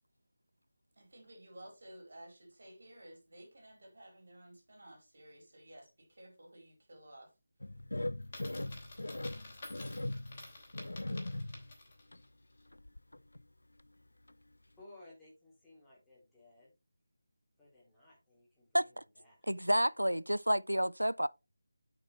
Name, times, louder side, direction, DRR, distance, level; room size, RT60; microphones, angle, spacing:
voice 1, 1.0-7.3, right 1 dB, 55° right, 4.4 m, -54 dB
sound 1, 7.6-11.7 12.1-12.2 12.7-13.4 13.8-13.9 14.3-14.4, left 1 dB, 70° left, 0.3 m, -40 dB
Coin (dropping), 8.2-12.1, left 2 dB, 30° left, 3.2 m, -51 dB
voice 2, 14.8-16.7 17.6-19.4, left 2 dB, 5° left, 3.7 m, -59 dB
voice 3, 19.5-21.3, equal, 85° right, 0.4 m, -30 dB
8.7 x 6.1 x 3.3 m
figure-of-eight pair, 160°, 0 cm